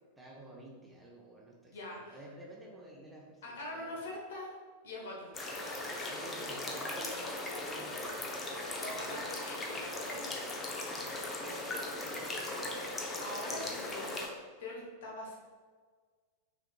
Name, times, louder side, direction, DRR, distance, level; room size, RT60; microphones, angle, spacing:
voice 1, 0.2-4.0 6.1-8.2 11.7-12.9, right 1 dB, 10° right, -3 dB, 0.9 m, -51 dB
voice 2, 1.7-2.2 3.4-4.5 4.8-5.4 8.8-10.3 13.2-14.1 14.6-15.4, left 1 dB, 60° left, -2 dB, 1.1 m, -43 dB
sound 1, 5.3-14.3, left 2 dB, 20° left, 0.7 m, -38 dB
5.9 x 3.4 x 2.3 m, 1.5 s
figure-of-eight pair, 90°, 0 cm